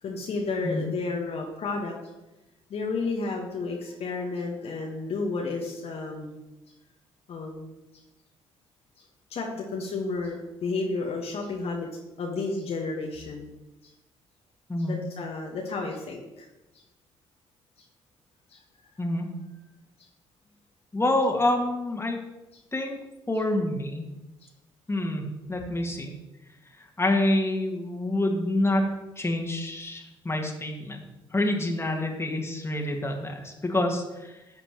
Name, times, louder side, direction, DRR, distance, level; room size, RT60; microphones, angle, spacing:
voice 1, 0.0-2.0 2.7-6.4 7.3-7.7 9.3-11.9 12.2-13.5 13.8-13.9 14.9-16.5 18.5-18.6, left 3 dB, 50° left, 0 dB, 1.4 m, -32 dB
voice 2, 20.9-22.2 22.7-23.0 23.3-24.0 24.9-26.1 27.0-28.8 29.2-31.1 31.3-34.4, left 1 dB, 20° left, 1 dB, 2.0 m, -27 dB
11.5 x 7.5 x 3.1 m, 1.0 s
figure-of-eight pair, 45°, 13 cm